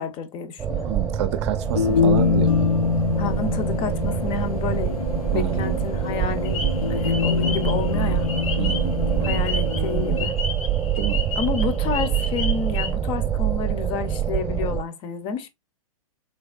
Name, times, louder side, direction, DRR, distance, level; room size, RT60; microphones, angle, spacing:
voice 1, 0.0-0.9 3.2-5.0 5.3-6.6 6.9-8.3 9.2-10.3 11.4-15.5, left 5 dB, 30° left, 0.7 m, -30 dB
sound 1, 0.6-14.8, right 9 dB, 15° right, 0.8 m, -25 dB
voice 2, 0.8-2.7 5.3-5.8 8.6-9.4 11.0-11.2, right 10 dB, 50° right, 0.6 m, -29 dB
sound 2, 1.6-10.3, left 6 dB, 80° left, 0.7 m, -25 dB
sound 3, 6.4-8.9 9.2-12.9, left 5 dB, 65° left, 1.0 m, -32 dB
3.5 x 3.4 x 2.4 m
figure-of-eight pair, 110°, 18 cm